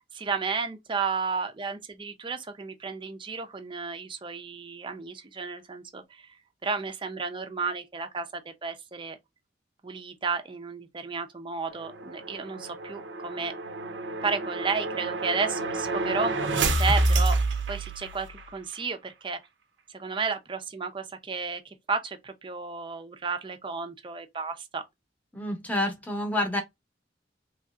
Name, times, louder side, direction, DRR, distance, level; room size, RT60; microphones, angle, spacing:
voice 1, 0.1-6.3 6.6-9.2 9.8-13.5 14.2-17.4 17.7-19.4 19.9-24.8, right 4 dB, 30° right, 0.5 m, -33 dB
sound 1, 11.7-18.5, right 2 dB, 75° right, 0.5 m, -28 dB
voice 2, 25.3-26.6, left 1 dB, 10° left, 0.9 m, -28 dB
3.1 x 2.7 x 2.3 m
head